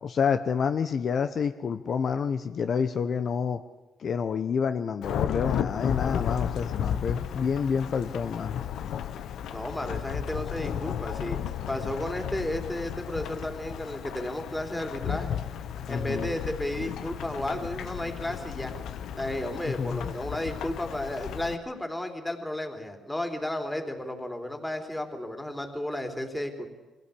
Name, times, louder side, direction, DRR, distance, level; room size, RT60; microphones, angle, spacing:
voice 1, 0.0-3.6 4.0-8.6 15.9-16.3 19.6-20.1, left 6 dB, 55° left, 9 dB, 0.9 m, -28 dB
Thunderstorm / Rain, 5.0-21.6, left 9 dB, 75° left, 1.1 m, -34 dB
voice 2, 9.5-11.4 11.7-15.3 15.9-18.7 19.2-26.7, left 1 dB, 10° left, 4 dB, 3.5 m, -33 dB
23.0 x 16.5 x 8.5 m, 1.2 s
cardioid pair, 90°, 0 cm